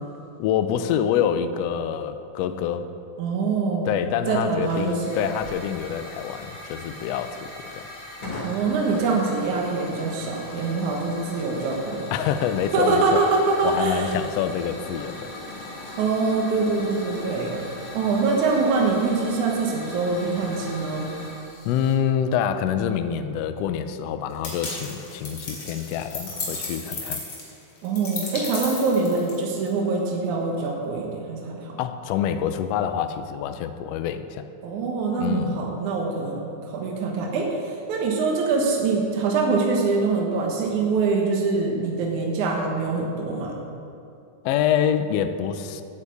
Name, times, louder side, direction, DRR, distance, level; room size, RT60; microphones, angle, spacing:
voice 1, 0.4-2.9 3.8-7.9 12.1-13.2 13.6-15.3 21.6-27.2 31.8-34.4 35.2-35.7 44.4-45.8, left 9 dB, 90° left, 9 dB, 1.4 m, -26 dB
voice 2, 3.2-5.2 8.4-12.1 12.7-14.1 16.0-17.5 17.9-21.1 27.8-31.7 34.6-43.6, right 4 dB, 75° right, 0 dB, 2.7 m, -24 dB
Hiss / Fire, 4.6-21.9, left 2 dB, 65° left, 3.7 m, -38 dB
sound 1, 24.4-29.7, left 3 dB, 40° left, 2.8 m, -34 dB
9.9 x 8.3 x 8.2 m, 2.5 s
omnidirectional pair, 3.6 m